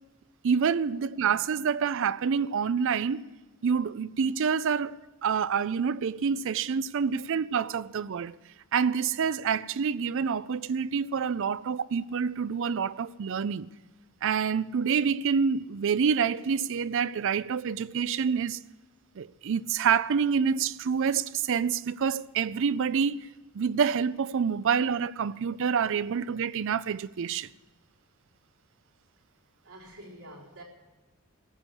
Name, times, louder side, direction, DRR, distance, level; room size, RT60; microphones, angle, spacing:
voice 1, 0.4-3.3 3.6-4.9 5.2-8.4 8.7-13.7 14.2-18.6 19.2-23.3 23.5-27.5, right 6 dB, 60° right, 0.4 m, -27 dB
voice 2, 29.6-30.6, right 1 dB, 80° right, 4.2 m, -47 dB
14.5 x 8.5 x 9.7 m
head